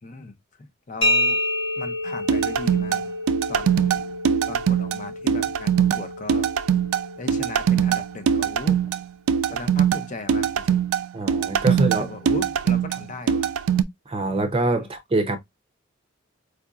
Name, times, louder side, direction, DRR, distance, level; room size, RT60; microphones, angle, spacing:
voice 1, 0.0-1.4 1.8-3.1 3.5-4.0 4.5-6.5 7.2-8.8 9.5-10.8 11.7-13.6 14.8-14.9, left 3 dB, 40° left, 0.6 m, -37 dB
sound 1, 1.0-8.6, left 1 dB, 65° left, 1.2 m, -29 dB
sound 2, 2.3-13.8, right 8 dB, 85° right, 0.3 m, -22 dB
voice 2, 11.1-12.1 14.1-15.4, right 2 dB, 25° right, 0.5 m, -24 dB
4.6 x 2.5 x 2.3 m
head